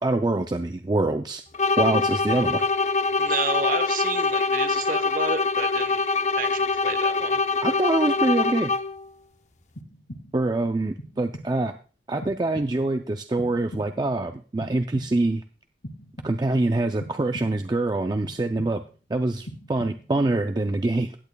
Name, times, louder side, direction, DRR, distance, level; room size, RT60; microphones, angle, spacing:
voice 1, 0.0-1.4 1.8-2.7 7.6-8.7 10.3-11.7 12.1-15.4 16.2-18.8 19.1-21.2, right 2 dB, 25° right, 6 dB, 0.4 m, -25 dB
sound 1, 1.5-9.1, left 4 dB, 40° left, 0.6 m, -24 dB
voice 2, 3.2-6.0 6.4-7.4, right 4 dB, 50° right, 10 dB, 0.9 m, -31 dB
sound 2, 9.8-10.5 11.0-11.7 12.2-13.0 13.4-14.2 14.6-15.4 15.8-16.6 17.0-17.8 18.2-19.0 19.4-20.3, equal, 70° left, 1.8 m, -42 dB
16.5 x 8.8 x 2.2 m, 0.39 s
head